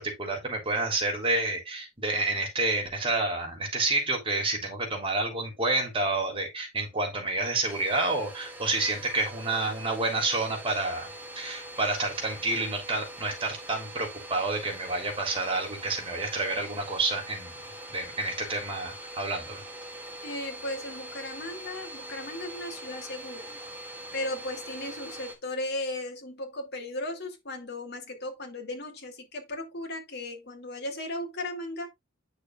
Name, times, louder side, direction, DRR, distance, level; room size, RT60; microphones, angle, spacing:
voice 1, 0.0-11.1 11.3-17.5 17.9-19.6, right 2 dB, 30° right, 3.4 m, -29 dB
Domestic sounds home sounds, 7.7-25.4, right 1 dB, 10° right, 2.3 m, -43 dB
voice 2, 20.2-23.6 24.1-31.9, left 1 dB, 55° left, 2.5 m, -36 dB
9.3 x 6.5 x 2.4 m
head